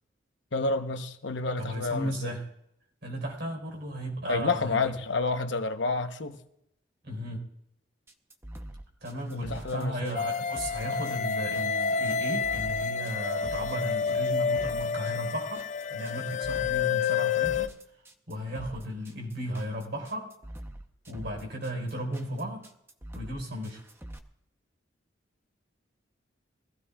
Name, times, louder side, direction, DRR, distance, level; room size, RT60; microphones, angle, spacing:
voice 1, 0.5-2.3 4.3-6.4 9.3-10.2, left 3 dB, 70° left, 0.9 m, -29 dB
voice 2, 1.6-2.4 3.0-4.8 7.0-7.4 9.0-17.7 18.3-20.3 21.1-22.7 23.1-23.8, equal, 55° right, 4.3 m, -35 dB
sound 1, 8.1-24.2, right 1 dB, 10° right, 0.8 m, -45 dB
sound 2, 10.2-17.7, left 6 dB, 35° left, 0.4 m, -29 dB
23.5 x 15.5 x 2.4 m
head